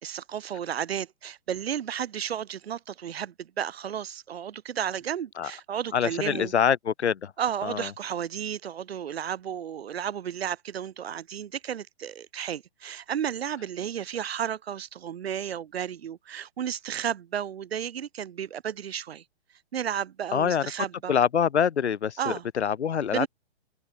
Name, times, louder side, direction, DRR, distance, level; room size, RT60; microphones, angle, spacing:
voice 1, 0.0-6.5 7.4-19.2 19.7-21.2 22.2-22.5 23.1-23.3, right 9 dB, 65° right, 2.4 m, -33 dB
voice 2, 5.9-7.3 7.6-7.9 20.3-20.6 21.1-23.3, left 8 dB, 80° left, 1.7 m, -25 dB
hypercardioid pair, 150°, 33 cm